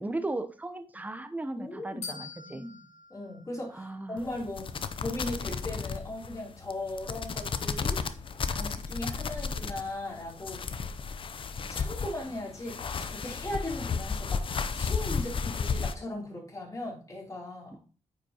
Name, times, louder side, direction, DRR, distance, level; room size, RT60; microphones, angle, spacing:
voice 1, 0.0-2.6 3.7-4.2, right 2 dB, 15° right, 9 dB, 0.7 m, -36 dB
voice 2, 1.5-2.2 2.4-2.8 3.1-8.0 8.5-10.6 11.7-17.8, left 1 dB, 30° left, -2 dB, 3.1 m, -38 dB
sound 1, 2.0-4.3, left 4 dB, 70° left, 2.7 m, -45 dB
sound 2, 4.2-15.9, left 5 dB, 50° left, 0.5 m, -34 dB
8.8 x 4.9 x 2.9 m, 0.38 s
cardioid pair, 80°, 12 cm